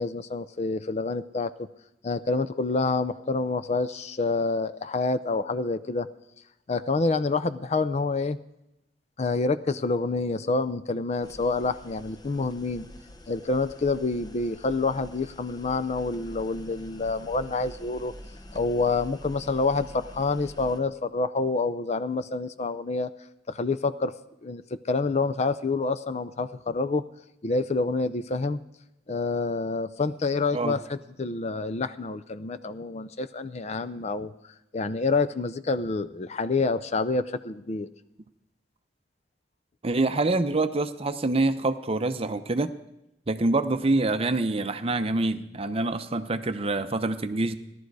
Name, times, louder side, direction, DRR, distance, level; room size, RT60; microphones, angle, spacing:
voice 1, 0.0-1.5 2.0-6.1 6.7-8.4 9.2-12.9 13.3-18.1 18.5-23.1 23.5-24.1 24.4-24.6 24.9-27.0 27.4-28.6 29.1-34.3 34.7-37.9, left 3 dB, 40° left, 12 dB, 0.5 m, -27 dB
sound 1, 11.2-20.8, left 1 dB, 20° left, 0.8 m, -46 dB
voice 2, 39.8-42.7 43.3-47.6, right 2 dB, 35° right, 10 dB, 0.7 m, -26 dB
16.5 x 11.5 x 4.7 m, 0.88 s
head